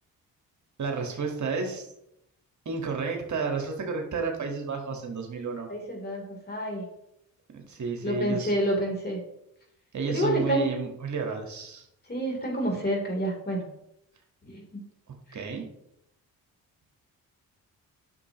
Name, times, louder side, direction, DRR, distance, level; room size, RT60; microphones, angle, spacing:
voice 1, 0.8-1.9 2.6-5.7 7.5-8.5 9.9-11.8 15.3-15.7, right 5 dB, 50° right, 2 dB, 1.6 m, -31 dB
voice 2, 5.7-6.9 8.0-9.2 10.1-10.6 12.1-13.6 14.4-14.8 15.3-15.4, equal, 25° left, 0 dB, 3.3 m, -28 dB
9.6 x 6.5 x 3.0 m, 0.80 s
supercardioid pair, 65°, 37 cm